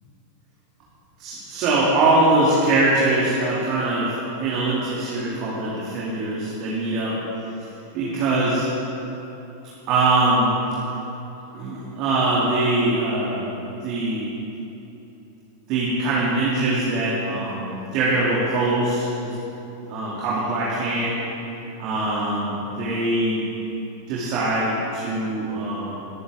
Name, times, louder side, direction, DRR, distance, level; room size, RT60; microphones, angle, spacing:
voice 1, 1.2-7.1 7.9-8.7 9.9-10.5 11.5-13.4 13.8-14.3 15.7-19.3 19.9-21.1 21.8-23.4 24.1-26.0, right 2 dB, 40° right, -7 dB, 2.8 m, -22 dB
22.5 x 10.0 x 3.8 m, 3.0 s
figure-of-eight pair, 90°, 0 cm